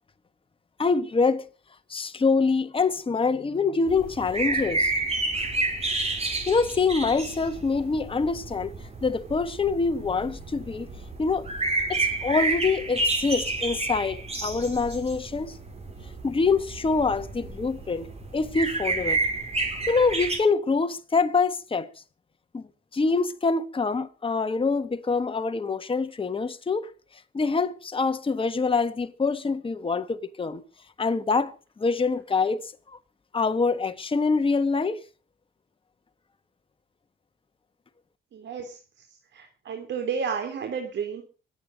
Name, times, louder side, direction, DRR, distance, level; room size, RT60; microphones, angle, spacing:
voice 1, 0.8-1.5 1.9-4.9 6.5-8.7 9.0-10.9 11.2-11.5 11.9-15.6 16.2-19.2 19.9-21.9 22.5-22.7 22.9-26.9 27.3-30.6 31.0-32.7 33.3-35.0, left 4 dB, 25° left, 1.4 m, -25 dB
sound 1, 3.9-20.4, right 3 dB, 30° right, 6.1 m, -30 dB
voice 2, 38.3-38.8 39.3-41.2, right 6 dB, 65° right, 3.3 m, -31 dB
24.0 x 9.0 x 5.1 m
cardioid pair, 90°, 20 cm